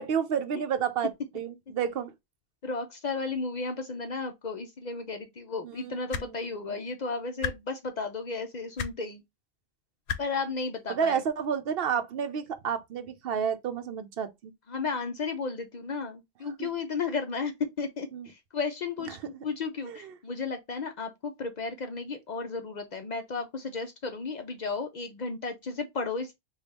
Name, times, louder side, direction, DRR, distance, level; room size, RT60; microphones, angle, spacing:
voice 1, 0.0-2.1 5.6-6.3 6.7-6.8 10.9-14.5 16.6-16.7 18.1-18.3 19.1-19.2 19.9-20.1, right 7 dB, 65° right, 0.7 m, -31 dB
voice 2, 2.6-9.2 10.2-11.2 14.7-26.3, left 4 dB, 55° left, 0.6 m, -34 dB
sound 1, 6.1-6.3 7.4-7.5 8.8-8.9 10.1-10.2 11.4-11.5, left 7 dB, 90° left, 0.9 m, -31 dB
3.4 x 2.3 x 4.0 m
omnidirectional pair, 1.1 m